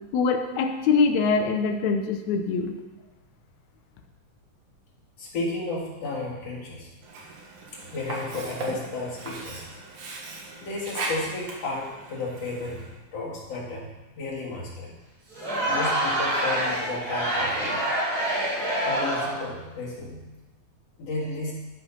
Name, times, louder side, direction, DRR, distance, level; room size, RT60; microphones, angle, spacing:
voice 1, 0.1-2.8, left 5 dB, 75° left, 5 dB, 2.2 m, -23 dB
voice 2, 5.2-6.9 7.9-9.6 10.6-12.8 13.1-13.9 14.2-14.9 15.7-17.8 18.8-20.2 21.0-21.5, left 2 dB, 60° left, -4 dB, 2.9 m, -33 dB
Sink (filling or washing), 7.0-13.0, right 3 dB, 85° right, 3.1 m, -38 dB
Crowd, 15.3-19.5, right 1 dB, 45° right, 3.7 m, -26 dB
12.5 x 5.5 x 5.5 m, 1.1 s
omnidirectional pair, 3.4 m